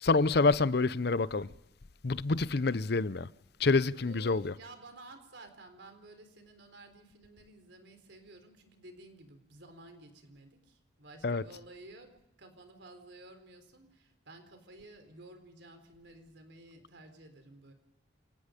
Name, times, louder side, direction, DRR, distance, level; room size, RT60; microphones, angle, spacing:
voice 1, 0.0-1.5 2.0-3.3 3.6-4.5 11.2-11.4, left 3 dB, 60° left, 0.7 m, -27 dB
voice 2, 3.9-12.1 12.4-17.7, right 2 dB, 70° right, 4.0 m, -53 dB
28.0 x 18.0 x 5.2 m
head